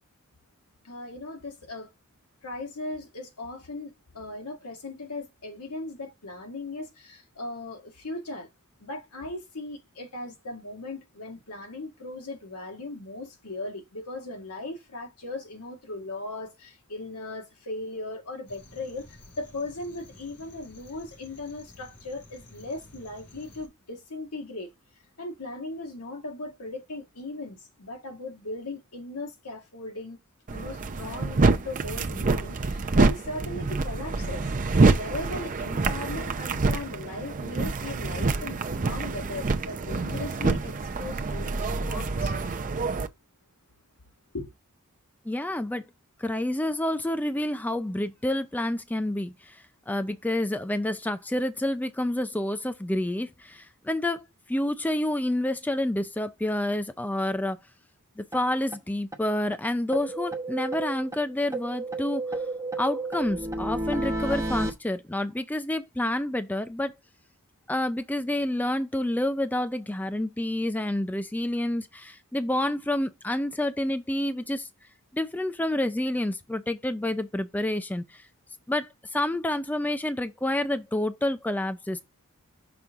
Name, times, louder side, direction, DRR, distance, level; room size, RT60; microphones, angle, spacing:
voice 1, 0.8-1.9 2.4-8.5 8.8-24.7 25.2-30.2 30.5-34.5 35.0-42.3 44.3-44.5, left 2 dB, 85° left, 1.8 m, -38 dB
sound 1, 18.5-23.7, left 2 dB, 70° left, 3.1 m, -52 dB
sound 2, 30.5-43.1, right 3 dB, 35° right, 0.6 m, -26 dB
voice 2, 45.3-45.9 46.2-49.6 49.9-57.6 58.2-62.2 62.8-66.9 67.7-74.7 75.1-78.2 78.7-82.0, left 1 dB, 5° left, 0.4 m, -28 dB
sound 3, 58.3-58.4 58.7-58.8 59.1-59.2 59.5-59.6 59.9-61.2 61.5-64.7, right 2 dB, 15° right, 0.9 m, -31 dB
6.1 x 5.2 x 3.6 m
head